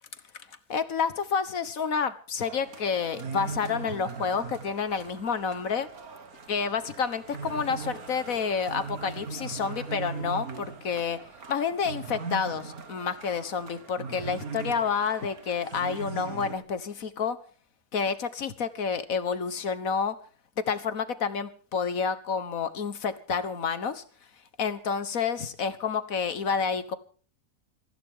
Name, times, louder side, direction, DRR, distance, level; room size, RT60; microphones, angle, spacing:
voice 1, 0.3-5.9 6.5-11.2 11.5-17.4 17.9-20.2 20.6-24.0 24.6-27.0, left 6 dB, 65° left, 12 dB, 1.8 m, -29 dB
sound 1, 2.4-16.6, right 5 dB, 80° right, 2.2 m, -40 dB
23.0 x 15.5 x 3.8 m, 0.41 s
omnidirectional pair, 1.5 m